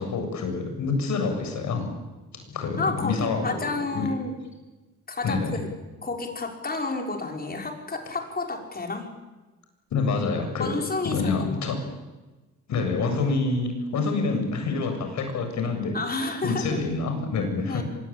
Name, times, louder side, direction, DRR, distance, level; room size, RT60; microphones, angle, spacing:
voice 1, 0.0-1.9 2.3-3.6 3.9-4.1 5.2-5.6 9.9-10.7 11.0-11.8 12.7-15.9 16.4-17.8, left 4 dB, 70° left, 6 dB, 7.7 m, -27 dB
voice 2, 2.8-4.3 5.1-5.7 6.0-9.1 10.6-11.6 15.9-16.8 17.7-17.8, left 3 dB, 30° left, 2 dB, 6.0 m, -30 dB
24.5 x 22.5 x 9.0 m, 1.2 s
cardioid pair, 90°, 30 cm